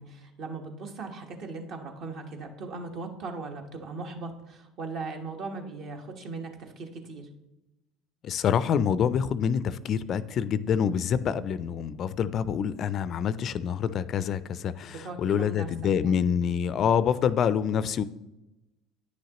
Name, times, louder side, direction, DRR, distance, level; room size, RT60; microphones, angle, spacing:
voice 1, 0.0-7.3 14.9-15.7 16.0-16.2, right 3 dB, 55° right, 3 dB, 1.2 m, -38 dB
voice 2, 8.2-18.0, left 8 dB, 50° left, 16 dB, 0.4 m, -26 dB
9.5 x 6.4 x 2.9 m, 0.95 s
hypercardioid pair, 75°, 0 cm